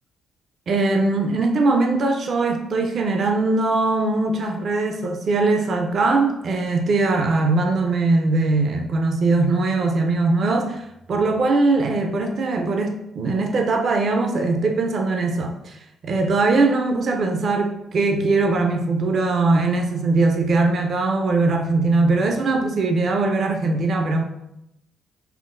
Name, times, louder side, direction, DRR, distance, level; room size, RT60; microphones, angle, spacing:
voice 1, 0.7-24.2, right 3 dB, 55° right, 4 dB, 0.5 m, -21 dB
5.6 x 2.0 x 2.5 m, 0.82 s
cardioid pair, 90°, 0 cm